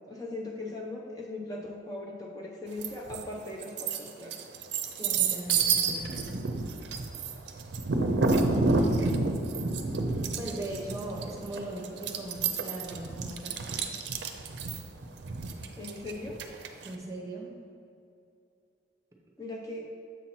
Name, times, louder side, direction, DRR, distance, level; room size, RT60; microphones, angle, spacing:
voice 1, 0.1-4.3 15.8-16.4 19.4-19.9, left 2 dB, 20° left, -2 dB, 0.5 m, -39 dB
sound 1, 2.8-3.2 3.6-16.9, right 4 dB, 70° right, 0.5 m, -29 dB
voice 2, 4.8-6.4 10.4-13.7 16.8-17.5, right 1 dB, 15° right, -1 dB, 0.8 m, -39 dB
7.1 x 2.8 x 5.8 m, 2.6 s
head